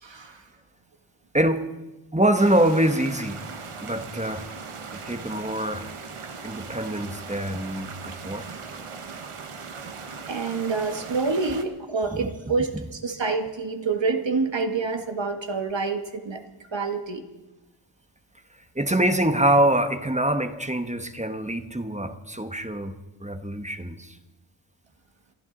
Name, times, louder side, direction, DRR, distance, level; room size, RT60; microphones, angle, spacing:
voice 1, 0.0-0.4 10.2-16.4 16.7-17.2, right 4 dB, 60° right, 6 dB, 1.6 m, -27 dB
voice 2, 1.3-1.7 2.1-3.4 3.8-4.5 4.9-5.9 6.4-8.5 12.1-12.3 18.7-24.2, right 1 dB, 15° right, 8 dB, 1.2 m, -24 dB
sound 1, 2.3-11.6, right 5 dB, 90° right, 1.4 m, -39 dB
29.0 x 11.5 x 3.9 m, 1.0 s
wide cardioid pair, 60°, 50 cm